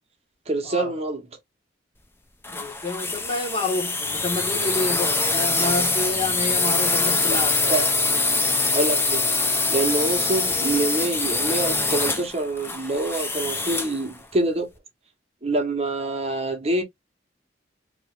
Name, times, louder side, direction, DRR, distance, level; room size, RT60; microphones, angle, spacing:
voice 1, 0.5-1.2 7.3-7.4 7.7-7.9 8.3-8.4 8.7-9.2 9.7-14.7 15.4-16.8, right 2 dB, 35° right, 1.0 m, -25 dB
sound 1, 2.4-14.0, left 3 dB, 10° left, 0.5 m, -24 dB
voice 2, 2.5-7.8, left 2 dB, 30° left, 1.2 m, -29 dB
4.8 x 3.0 x 2.4 m
head